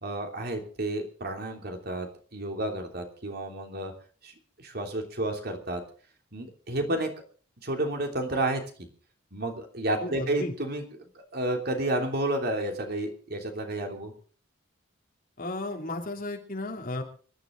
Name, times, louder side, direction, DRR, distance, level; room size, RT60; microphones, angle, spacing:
voice 1, 0.0-3.9 4.2-5.8 6.3-7.1 7.6-8.9 9.3-14.1, right 1 dB, 55° right, 3 dB, 3.2 m, -31 dB
voice 2, 10.0-10.5 15.4-17.0, left 2 dB, 45° left, 2 dB, 3.0 m, -34 dB
25.0 x 11.5 x 3.9 m, 0.42 s
head